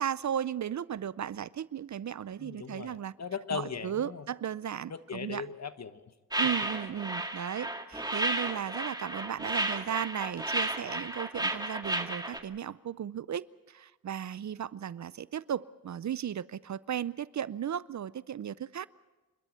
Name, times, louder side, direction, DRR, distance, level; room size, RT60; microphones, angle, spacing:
voice 1, 0.0-3.1 3.5-5.4 6.4-18.9, right 9 dB, 55° right, 0.6 m, -35 dB
voice 2, 2.4-4.3 4.9-6.0, left 6 dB, 50° left, 1.2 m, -38 dB
sound 1, 6.3-12.4, right 1 dB, 10° right, 2.0 m, -33 dB
27.5 x 12.5 x 8.8 m
cardioid pair, 75°, 34 cm